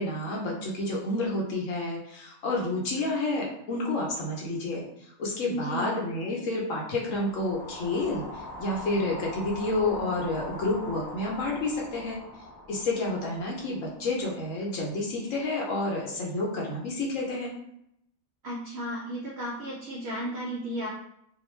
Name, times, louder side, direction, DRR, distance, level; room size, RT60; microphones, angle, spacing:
voice 1, 0.0-12.2 12.7-17.5, left 2 dB, 65° left, -2 dB, 0.9 m, -30 dB
voice 2, 5.5-5.9 18.4-20.9, right 1 dB, 65° right, -5 dB, 0.7 m, -34 dB
sound 1, 7.0-15.2, left 1 dB, 5° left, 0.4 m, -42 dB
2.4 x 2.1 x 3.0 m, 0.76 s
omnidirectional pair, 1.6 m